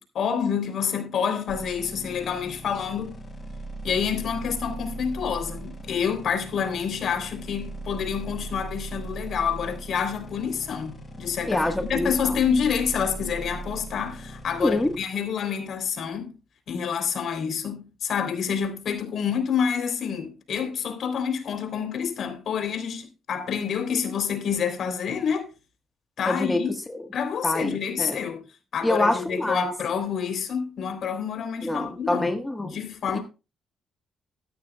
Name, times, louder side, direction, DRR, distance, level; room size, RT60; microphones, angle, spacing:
voice 1, 0.0-3.2 3.8-16.3 16.7-25.5 26.2-26.7 27.1-28.4 28.7-32.3 32.6-33.2, left 7 dB, 65° left, 3.5 m, -28 dB
sound 1, 1.5-15.0, right 2 dB, 25° left, 5.9 m, -39 dB
voice 2, 11.5-12.3 14.6-15.0 26.3-26.6 26.9-27.0 27.4-28.2 28.8-29.7 31.6-32.7 33.1-33.2, left 1 dB, 10° left, 1.4 m, -26 dB
14.5 x 12.5 x 2.3 m
cardioid pair, 90°, 0 cm